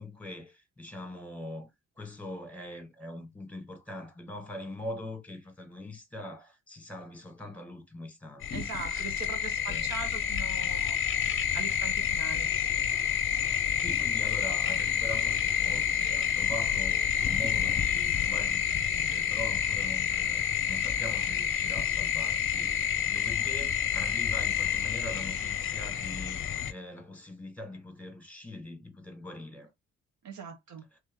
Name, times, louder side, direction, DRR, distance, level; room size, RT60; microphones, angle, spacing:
voice 1, 0.0-1.7 2.0-8.5 9.7-10.0 13.8-29.7, left 1 dB, 5° left, 1.6 m, -42 dB
sound 1, 8.4-26.7, left 9 dB, 45° left, 0.6 m, -29 dB
voice 2, 8.5-11.0 11.5-12.5 30.2-30.8, right 6 dB, 65° right, 1.1 m, -41 dB
3.4 x 3.1 x 3.7 m
cardioid pair, 90°, 30 cm